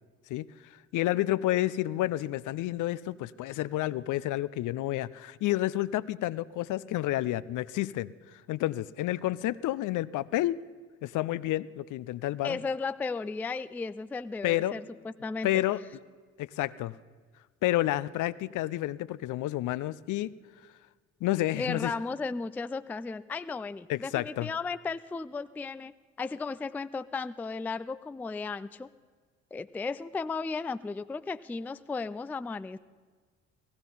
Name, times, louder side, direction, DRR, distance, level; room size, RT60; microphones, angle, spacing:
voice 1, 0.9-10.6 11.0-12.6 14.4-14.7 15.4-15.8 16.4-16.9 17.6-20.3 21.2-21.9 23.9-24.5, left 15 dB, 50° left, 17 dB, 0.6 m, -30 dB
voice 2, 12.4-15.5 21.6-25.9 26.2-28.9 29.5-32.8, left 4 dB, 5° left, 13 dB, 0.4 m, -35 dB
16.5 x 15.0 x 5.4 m, 1.5 s
figure-of-eight pair, 45°, 38 cm